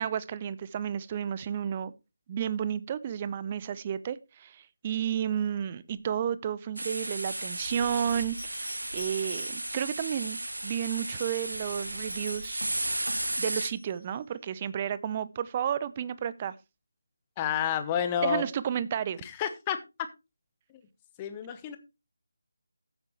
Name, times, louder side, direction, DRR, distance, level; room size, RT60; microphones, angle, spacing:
voice 1, 0.0-1.9 2.3-12.6 13.4-16.6 18.2-19.2, right 9 dB, 25° right, 0.6 m, -32 dB
sound 1, 5.9-6.0 7.2-10.0 11.0-14.0, equal, 90° right, 3.2 m, -45 dB
sound 2, 6.8-13.7, right 1 dB, 70° right, 1.5 m, -34 dB
voice 2, 17.4-18.5 19.2-19.8 21.2-21.8, left 9 dB, 15° left, 1.0 m, -29 dB
15.0 x 8.3 x 3.1 m
figure-of-eight pair, 155°, 0 cm